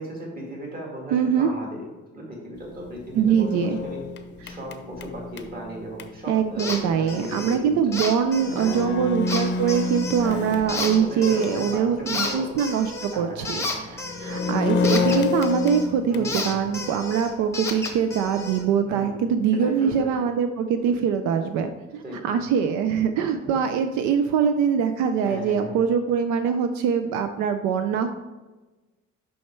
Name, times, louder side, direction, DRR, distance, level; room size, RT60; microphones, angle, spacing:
voice 1, 0.0-1.8 2.1-4.1 4.4-7.8 8.6-9.2 10.2-12.5 13.1-14.0 14.9-15.3 16.1-16.8 18.8-19.2 19.5-20.2 22.0-22.3 23.4-23.5 25.2-25.8, right 1 dB, 30° right, -2 dB, 2.0 m, -37 dB
voice 2, 1.1-1.5 3.1-3.8 6.3-28.1, right 7 dB, 80° right, 8 dB, 0.5 m, -23 dB
sound 1, 2.8-6.1 7.9-8.0 8.4-11.7 12.1-12.2 13.9-16.4, left 4 dB, 40° left, 0.6 m, -29 dB
sound 2, 6.6-6.8 7.1-7.6 7.9-8.8 9.3-10.3 10.7-11.8 12.1-15.9 16.2-18.6, left 2 dB, 10° left, 0.9 m, -32 dB
6.3 x 5.7 x 4.4 m, 1.2 s
cardioid pair, 155°, 29 cm